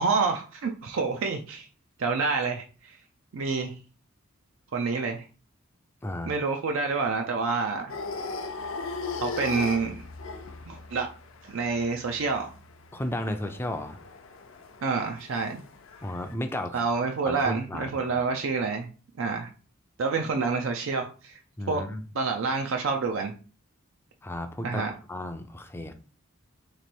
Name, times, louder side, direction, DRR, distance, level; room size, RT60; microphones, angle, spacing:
voice 1, 0.0-1.7 2.0-3.0 3.3-3.8 4.7-5.2 6.3-7.9 9.2-10.0 10.7-11.1 11.4-12.5 14.8-15.6 16.7-18.9 19.2-19.5 20.0-21.4 21.7-21.8 22.2-23.3 24.6-24.9, right 4 dB, 70° right, 4 dB, 0.4 m, -28 dB
voice 2, 6.0-6.3 12.9-14.0 16.0-16.8 17.3-17.9 18.2-18.3 21.6-22.0 24.2-24.8 25.1-25.9, left 1 dB, 10° left, 6 dB, 0.4 m, -33 dB
sound 1, 7.9-16.3, left 4 dB, 65° left, 0.5 m, -38 dB
3.0 x 2.9 x 4.3 m, 0.37 s
head